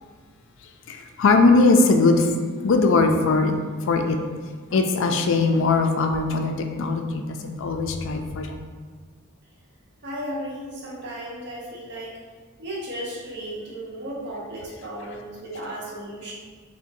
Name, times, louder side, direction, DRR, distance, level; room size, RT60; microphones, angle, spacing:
voice 1, 0.9-2.3 2.6-3.5 3.9-4.2 4.7-8.6, left 3 dB, 60° left, 4 dB, 0.4 m, -20 dB
voice 2, 10.0-12.2 12.6-16.3, right 1 dB, 55° right, -5 dB, 1.0 m, -35 dB
6.4 x 2.2 x 2.6 m, 1.5 s
head